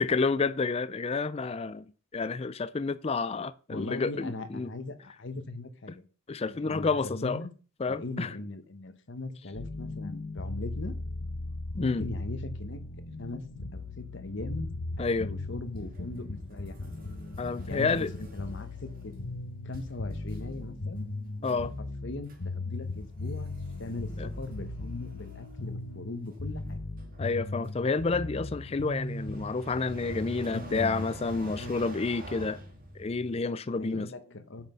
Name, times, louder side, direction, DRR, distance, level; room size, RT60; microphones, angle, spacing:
voice 1, 0.0-1.8 2.1-4.7 6.3-7.5 7.8-8.3 11.8-12.1 15.0-15.3 17.4-18.1 21.4-21.7 24.2-24.3 27.2-32.6 33.0-34.1, left 4 dB, 30° left, 0.4 m, -29 dB
voice 2, 3.7-6.0 6.7-7.5 7.9-11.0 11.7-12.8 13.2-13.4 13.7-14.7 15.0-16.9 17.7-19.1 19.6-21.1 21.5-21.6 22.0-23.5 23.8-26.8 30.4-31.1 31.5-31.8 33.8-34.7, left 2 dB, 55° left, 1.0 m, -39 dB
sound 1, 9.5-29.5, left 2 dB, 85° left, 1.3 m, -38 dB
sound 2, 15.8-19.3 19.7-20.0 20.3-20.6 21.0-21.1 21.4-21.7 22.3-22.4 22.7-33.4, right 1 dB, 40° right, 2.0 m, -47 dB
9.0 x 5.8 x 5.6 m
head